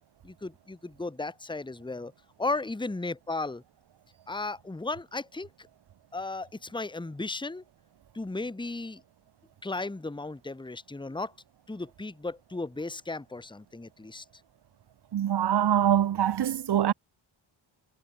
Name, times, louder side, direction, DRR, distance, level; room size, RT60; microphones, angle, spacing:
voice 1, 0.2-2.1 2.4-3.6 4.3-5.5 6.1-7.6 8.1-9.0 9.6-11.3 11.7-14.2, left 3 dB, 10° left, 1.2 m, -35 dB
voice 2, 15.1-16.9, right 10 dB, 60° right, 0.9 m, -24 dB
cardioid pair, 95°, 47 cm